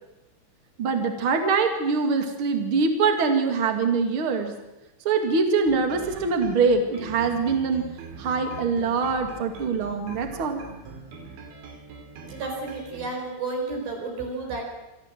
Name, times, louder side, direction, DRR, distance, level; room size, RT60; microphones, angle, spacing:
voice 1, 0.8-4.5 5.0-7.9 8.2-10.6, right 4 dB, 40° right, 5 dB, 2.1 m, -23 dB
sound 1, 5.7-13.1, right 4 dB, 80° right, 4.8 m, -42 dB
voice 2, 12.2-14.7, right 3 dB, 55° right, 1 dB, 6.2 m, -32 dB
24.5 x 14.0 x 7.7 m, 1.0 s
omnidirectional pair, 5.1 m